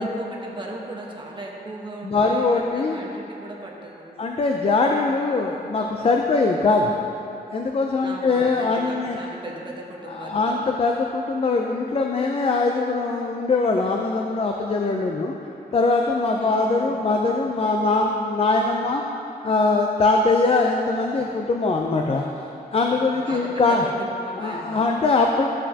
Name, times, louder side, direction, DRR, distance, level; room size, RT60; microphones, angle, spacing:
voice 1, 0.0-4.2 8.0-10.7 16.4-17.0 23.2-25.1, right 1 dB, 30° right, -2 dB, 1.1 m, -38 dB
voice 2, 2.0-3.0 4.2-7.0 7.5-9.2 10.2-15.3 15.7-19.0 19.4-22.3 22.7-23.8 24.4-25.5, left 3 dB, 35° left, 1 dB, 0.5 m, -22 dB
13.5 x 7.3 x 2.8 m, 2.8 s
wide cardioid pair, 165°, 17 cm